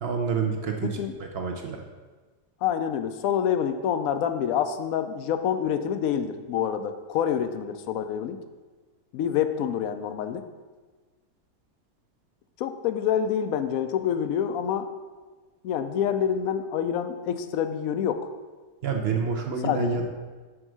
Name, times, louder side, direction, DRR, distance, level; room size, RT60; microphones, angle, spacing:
voice 1, 0.0-0.9 1.2-1.8 18.8-20.0, right 5 dB, 55° right, 3 dB, 0.7 m, -28 dB
voice 2, 0.8-1.2 2.6-8.4 9.1-10.4 12.6-14.9 15.6-18.3 19.6-20.0, left 8 dB, 70° left, 9 dB, 0.9 m, -27 dB
6.2 x 4.6 x 6.1 m, 1.3 s
omnidirectional pair, 1.7 m